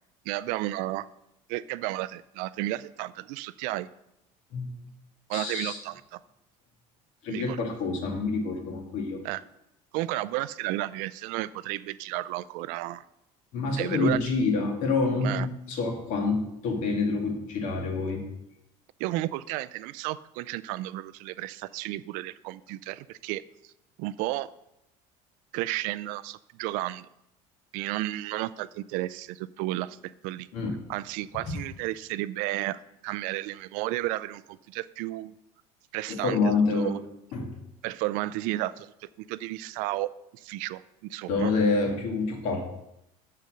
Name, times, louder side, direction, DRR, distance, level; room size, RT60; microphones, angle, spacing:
voice 1, 0.3-1.1 1.5-3.9 5.3-6.2 7.3-7.6 9.2-9.4 9.9-13.0 13.8-14.2 15.2-15.5 19.0-23.4 24.0-24.5 25.5-27.1 27.7-30.0 30.2-30.5 30.9-35.3 35.9-37.0 37.8-41.5, right 16 dB, 70° right, 17 dB, 0.4 m, -33 dB
voice 2, 5.3-5.8 7.2-9.2 13.5-18.2 30.5-30.7 36.1-37.0 37.3-37.5 41.3-42.6, left 3 dB, 60° left, 2 dB, 2.1 m, -27 dB
6.8 x 6.6 x 6.3 m, 0.84 s
cardioid pair, 155°, 14 cm